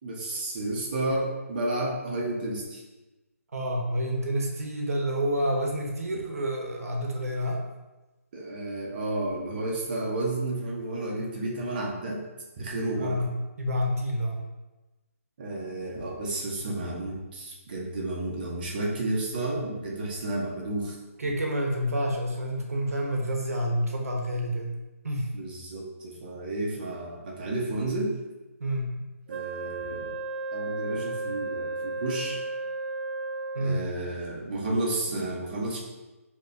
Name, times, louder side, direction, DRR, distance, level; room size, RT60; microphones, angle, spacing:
voice 1, 0.0-2.8 8.3-12.2 12.6-13.2 15.4-21.0 25.3-28.1 29.3-30.2 30.5-32.4 33.6-35.8, right 2 dB, 35° right, -2 dB, 1.0 m, -31 dB
voice 2, 3.5-7.6 13.0-14.5 21.2-24.8 25.0-25.3 28.6-28.9 33.5-33.9, equal, 75° right, 1 dB, 1.0 m, -28 dB
Wind instrument woodwind instrument, 29.3-34.0, right 3 dB, 55° right, 0.4 m, -34 dB
6.3 x 3.0 x 2.6 m, 1.1 s
hypercardioid pair, 160°, 8 cm